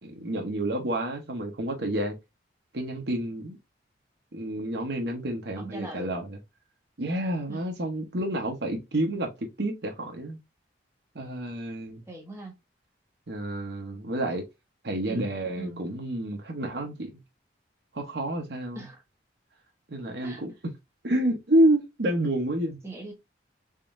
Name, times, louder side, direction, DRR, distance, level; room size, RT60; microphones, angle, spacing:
voice 1, 0.0-2.1 2.7-3.6 4.3-6.4 7.0-9.3 9.6-10.4 11.1-12.0 13.3-14.4 14.8-17.1 17.9-18.8 19.9-20.5 21.0-22.8, right 1 dB, 60° right, 0.9 m, -29 dB
voice 2, 5.6-6.1 7.5-7.7 12.1-12.5 15.0-15.3 15.6-15.8 18.7-19.0 20.2-20.4 22.8-23.1, right 2 dB, 15° right, 1.3 m, -40 dB
3.7 x 3.7 x 2.5 m
head